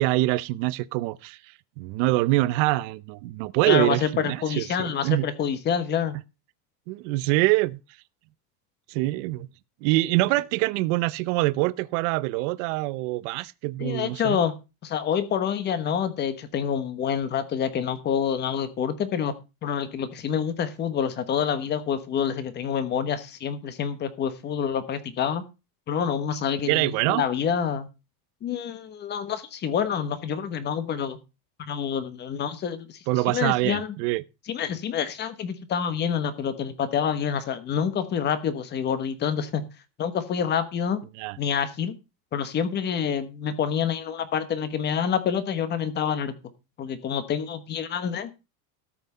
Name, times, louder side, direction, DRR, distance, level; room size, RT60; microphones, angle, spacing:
voice 1, 0.0-1.4 1.8-5.3 6.9-7.8 8.9-9.5 9.8-14.4 26.7-27.2 33.1-34.2 41.2-41.4, right 19 dB, 55° right, 0.7 m, -24 dB
voice 2, 3.7-6.2 13.8-14.5 14.8-19.3 19.6-25.4 25.9-27.9 28.4-31.2 31.6-33.9 34.5-39.6 40.0-41.0 41.4-41.9 42.3-46.3 46.8-48.4, left 8 dB, 25° left, 1.2 m, -27 dB
13.5 x 6.1 x 5.4 m
cardioid pair, 175°, 43 cm